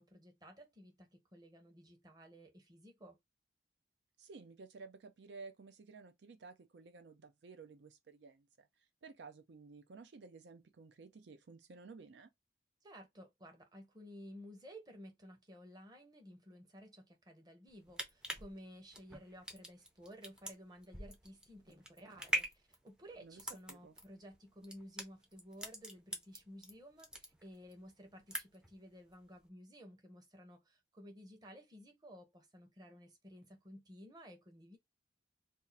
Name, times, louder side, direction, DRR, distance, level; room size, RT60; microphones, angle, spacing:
voice 1, 0.0-3.2 12.8-34.8, equal, 20° right, 0.8 m, -55 dB
voice 2, 4.2-8.7 9.0-12.3 23.2-23.4 23.7-23.9, right 4 dB, 70° right, 0.5 m, -54 dB
sound 1, 17.7-26.7 27.0-27.8 28.1-28.7 29.1-29.2, equal, 5° right, 0.5 m, -42 dB
2.7 x 2.4 x 4.0 m
head